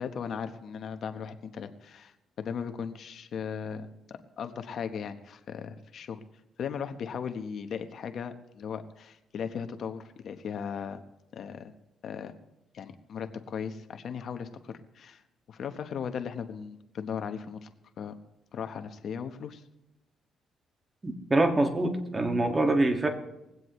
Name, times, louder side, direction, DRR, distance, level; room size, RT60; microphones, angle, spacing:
voice 1, 0.0-6.2 6.6-11.0 11.3-11.7 12.0-12.3 12.7-15.2 15.5-17.7 18.0-18.2 18.5-19.6, left 7 dB, 60° left, 8 dB, 1.1 m, -37 dB
voice 2, 21.0-23.1, right 2 dB, 25° right, 5 dB, 1.9 m, -25 dB
20.5 x 16.0 x 3.2 m, 0.93 s
cardioid pair, 90°, 0 cm